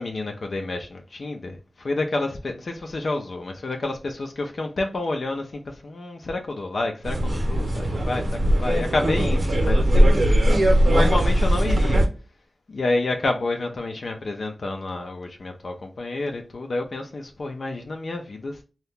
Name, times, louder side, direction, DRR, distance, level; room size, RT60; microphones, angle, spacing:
voice 1, 0.0-10.5 10.8-12.0 12.7-18.6, left 2 dB, 75° left, 0.5 m, -29 dB
sound 1, 7.0-12.0, equal, 75° right, 0.9 m, -19 dB
2.8 x 2.3 x 3.5 m
wide cardioid pair, 75°, 0 cm